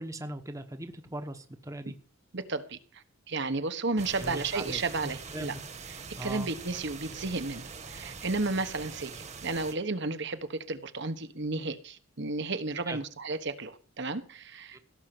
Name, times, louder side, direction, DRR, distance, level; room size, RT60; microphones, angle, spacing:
voice 1, 0.0-1.9 4.2-5.6 6.2-6.5 12.9-13.0 14.7-14.8, right 1 dB, 15° right, 1.1 m, -39 dB
voice 2, 2.3-5.5 5.9-14.8, right 3 dB, 55° right, 1.3 m, -33 dB
sound 1, 4.0-9.7, right 4 dB, 35° right, 1.5 m, -43 dB
17.0 x 6.6 x 7.8 m
head